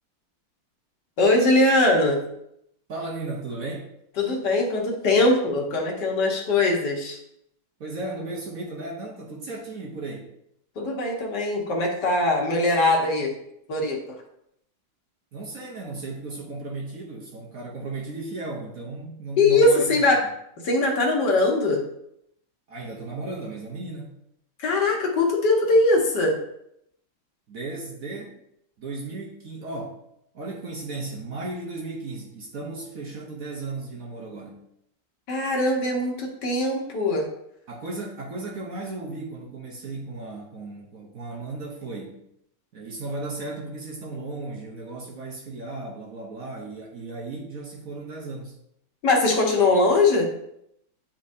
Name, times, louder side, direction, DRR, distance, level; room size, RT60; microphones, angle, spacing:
voice 1, 1.2-2.2 4.2-7.2 10.8-13.3 13.7-14.2 19.4-20.2 20.6-21.8 24.6-26.4 35.3-37.3 49.0-50.3, left 2 dB, 65° left, -1 dB, 1.7 m, -21 dB
voice 2, 2.9-3.9 7.8-10.3 15.3-20.2 22.7-24.1 27.5-28.4 28.8-30.0 30.3-34.7 37.7-42.2 42.7-48.6, right 2 dB, 55° right, -1 dB, 1.2 m, -35 dB
9.7 x 4.2 x 2.7 m, 0.77 s
omnidirectional pair, 2.1 m